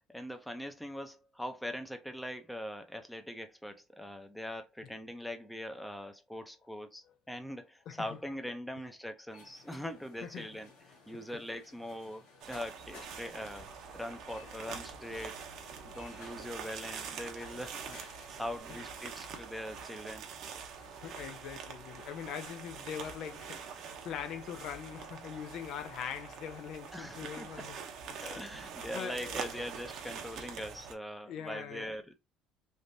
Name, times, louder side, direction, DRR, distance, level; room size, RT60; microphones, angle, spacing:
voice 1, 0.1-10.7 11.1-13.7 13.9-15.4 15.9-18.0 18.4-20.3 26.9-27.7 28.2-32.1, equal, 5° left, 0.6 m, -42 dB
sound 1, 9.3-18.6, left 3 dB, 85° left, 1.6 m, -56 dB
sound 2, 12.4-30.9, right 6 dB, 60° right, 0.7 m, -45 dB
voice 2, 20.8-27.8 28.3-28.5 28.9-29.7 31.2-32.0, left 8 dB, 60° left, 0.4 m, -42 dB
3.4 x 2.5 x 2.6 m
supercardioid pair, 110°, 0 cm